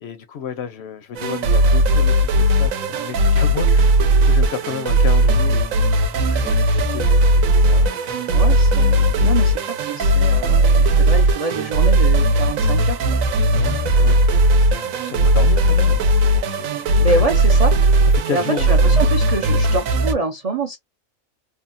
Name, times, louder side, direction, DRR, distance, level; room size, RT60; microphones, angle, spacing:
voice 1, 0.0-3.9 4.2-5.9 6.2-7.3 7.6-8.1 13.5-14.3 14.7-17.2 18.1-19.1, left 8 dB, 65° left, 0.7 m, -32 dB
sound 1, 1.2-20.1, right 1 dB, 90° right, 1.0 m, -17 dB
voice 2, 8.3-13.0 17.0-17.8 18.3-20.8, right 3 dB, 60° right, 0.4 m, -25 dB
3.4 x 2.2 x 2.5 m
omnidirectional pair, 1.4 m